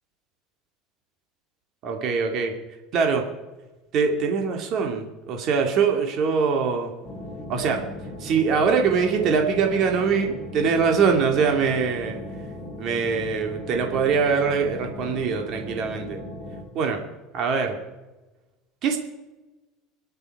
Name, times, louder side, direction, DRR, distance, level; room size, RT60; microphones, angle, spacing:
voice 1, 1.8-2.5 2.9-3.2 3.9-6.9 7.5-7.9 8.2-12.2 12.8-16.2 16.7-17.0 17.3-17.8 18.8-19.0, right 5 dB, 50° right, 3 dB, 2.5 m, -23 dB
sound 1, 7.0-16.6, left 1 dB, 10° left, 5.8 m, -37 dB
25.0 x 11.0 x 4.8 m, 1.1 s
cardioid pair, 140°, 0 cm